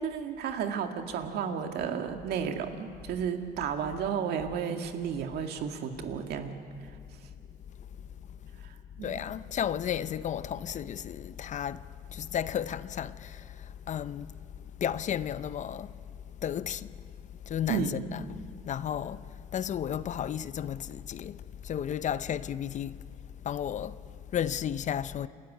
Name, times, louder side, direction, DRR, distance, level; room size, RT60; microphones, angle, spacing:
voice 1, 0.0-6.6 8.6-9.1 17.7-18.1, right 7 dB, 75° right, 2.0 m, -33 dB
voice 2, 9.0-17.0 17.5-23.1 23.4-25.3, left 9 dB, 45° left, 0.6 m, -34 dB
29.0 x 13.5 x 9.8 m
cardioid pair, 110°, 17 cm